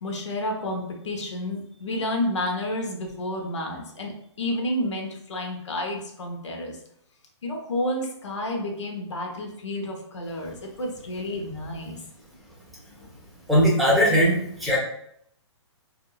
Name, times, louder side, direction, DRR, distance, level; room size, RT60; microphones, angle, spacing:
voice 1, 0.0-6.8 7.4-12.0, left 1 dB, 75° left, 1 dB, 1.1 m, -30 dB
voice 2, 13.5-14.8, equal, ahead, -6 dB, 1.1 m, -19 dB
5.0 x 2.8 x 2.4 m, 0.71 s
hypercardioid pair, 140°, 15 cm